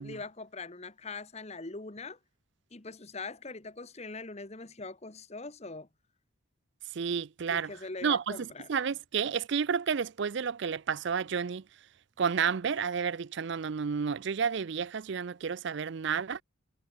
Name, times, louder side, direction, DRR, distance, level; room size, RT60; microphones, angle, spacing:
voice 1, 0.0-2.2 2.7-5.9 7.5-8.7, left 3 dB, 30° left, 1.1 m, -42 dB
voice 2, 6.9-7.7 8.0-11.6 12.2-16.4, right 6 dB, 55° right, 0.4 m, -31 dB
head